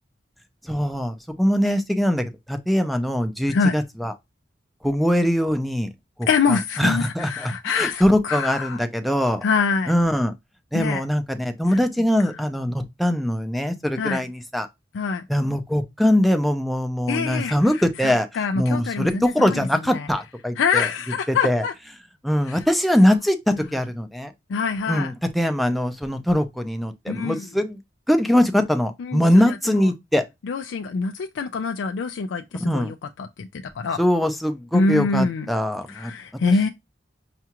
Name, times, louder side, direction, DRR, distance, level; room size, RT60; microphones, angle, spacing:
voice 1, 0.6-4.1 4.8-5.9 6.2-9.4 9.9-10.3 10.7-14.7 15.3-18.3 18.5-20.9 21.3-21.6 22.2-24.3 24.9-27.8 28.1-30.2 32.6-32.9 34.0-36.7, equal, ahead, 0.5 m, -22 dB
voice 2, 6.3-8.8 9.4-9.9 10.7-11.0 11.7-11.9 14.0-14.2 14.9-15.3 17.1-20.1 20.6-21.7 22.5-22.6 24.5-25.1 27.1-27.5 29.0-29.9 30.4-34.0 34.7-35.5 35.9-36.7, left 5 dB, 90° left, 0.4 m, -25 dB
5.7 x 2.4 x 2.9 m
head